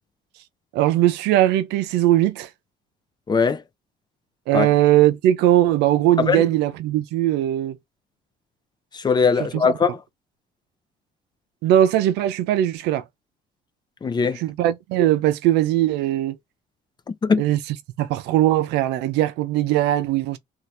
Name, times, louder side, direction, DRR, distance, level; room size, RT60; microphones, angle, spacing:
voice 1, 0.7-2.5 4.5-7.8 9.4-9.9 11.6-13.0 14.3-16.4 17.4-20.4, right 13 dB, 90° right, 0.5 m, -20 dB
voice 2, 3.3-3.6 4.5-4.7 6.2-6.4 8.9-10.0 14.0-14.4 17.2-17.4, left 5 dB, 25° left, 0.5 m, -20 dB
2.8 x 2.4 x 3.2 m
cardioid pair, 110°, 17 cm